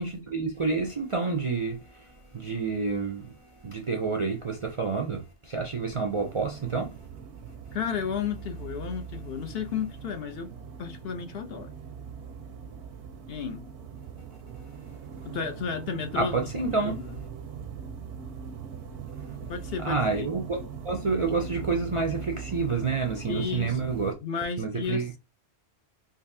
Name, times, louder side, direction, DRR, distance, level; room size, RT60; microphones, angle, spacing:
voice 1, 0.0-7.0 16.1-16.9 19.2-19.3 19.8-24.1 24.6-25.2, right 4 dB, 45° right, 0.4 m, -29 dB
sound 1, 6.1-24.1, right 7 dB, 80° right, 0.9 m, -41 dB
voice 2, 7.7-10.5 10.8-11.7 13.3-13.6 15.2-16.3 16.7-17.2 19.5-20.3 23.3-23.9 24.2-25.2, left 6 dB, 65° left, 0.8 m, -33 dB
3.9 x 2.6 x 2.6 m
omnidirectional pair, 1.2 m